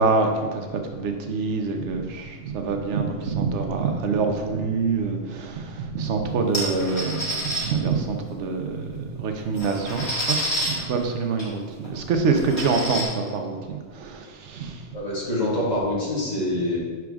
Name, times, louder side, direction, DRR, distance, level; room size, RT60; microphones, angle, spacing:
voice 1, 0.0-14.8, right 4 dB, 85° right, 4 dB, 1.0 m, -26 dB
sound 1, 6.5-7.6 8.9-9.0 9.4-10.7 11.4-11.5 11.8-11.9 12.3-13.0, right 1 dB, 65° left, 2.2 m, -28 dB
voice 2, 14.9-16.8, left 1 dB, 35° left, -6 dB, 1.6 m, -25 dB
6.0 x 4.7 x 3.5 m, 1.5 s
omnidirectional pair, 1.2 m